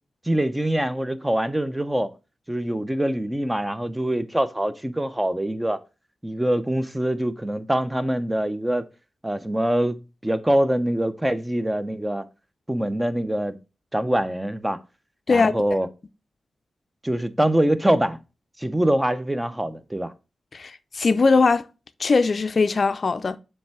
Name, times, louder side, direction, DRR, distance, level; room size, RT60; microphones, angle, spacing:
voice 1, 0.3-2.1 2.5-5.8 6.2-8.8 9.2-10.0 10.2-12.2 12.7-13.6 13.9-14.8 15.3-15.9 17.0-18.2 18.6-20.1, right 1 dB, 15° right, 0.6 m, -24 dB
voice 2, 20.5-21.7 22.0-23.4, left 4 dB, 55° left, 0.4 m, -20 dB
7.0 x 3.3 x 4.6 m
cardioid pair, 55°, 0 cm